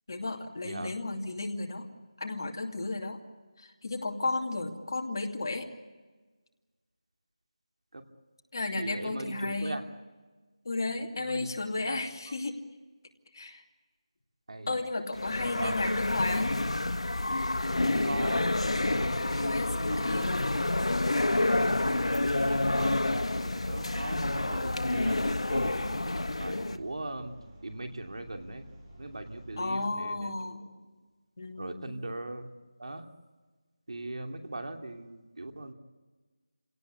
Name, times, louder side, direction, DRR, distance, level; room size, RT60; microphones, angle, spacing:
voice 1, 0.1-1.9 2.2-3.2 3.6-5.7 8.5-9.8 10.6-12.6 13.3-13.6 14.7-16.5 19.2-20.6 29.6-30.6 31.4-32.0, left 2 dB, 40° left, 2 dB, 2.6 m, -34 dB
voice 2, 8.7-9.8 11.1-11.5 11.7-12.0 12.3-12.4 14.5-14.8 15.5-15.7 17.8-20.3 21.6-28.6 29.0-30.7 31.6-32.5 32.8-33.1 33.9-35.7, right 2 dB, 65° right, 5 dB, 2.8 m, -40 dB
sound 1, 15.1-26.8, left 2 dB, 75° left, 1.5 m, -28 dB
sound 2, 23.3-29.7, right 1 dB, 20° right, 5.4 m, -51 dB
28.0 x 18.0 x 8.3 m, 1.3 s
figure-of-eight pair, 175°, 3 cm